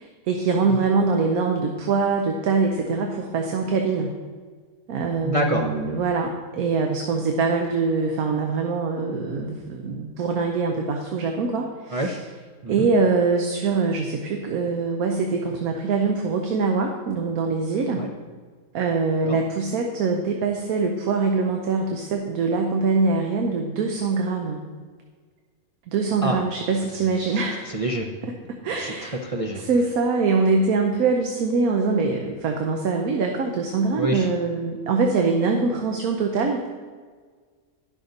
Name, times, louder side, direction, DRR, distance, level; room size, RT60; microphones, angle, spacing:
voice 1, 0.0-4.1 4.9-12.1 12.7-18.1 18.7-24.6 25.9-27.7 28.2-29.2 29.5-36.7, right 4 dB, 85° right, 3 dB, 1.2 m, -23 dB
voice 2, 5.2-5.7 11.9-12.2 12.6-12.9 18.0-18.1 19.3-19.4 26.2-26.4 27.0-27.4 27.7-28.1 28.7-29.6 34.0-34.3, right 1 dB, 50° right, 0 dB, 0.4 m, -27 dB
10.5 x 6.1 x 3.9 m, 1.6 s
omnidirectional pair, 1.5 m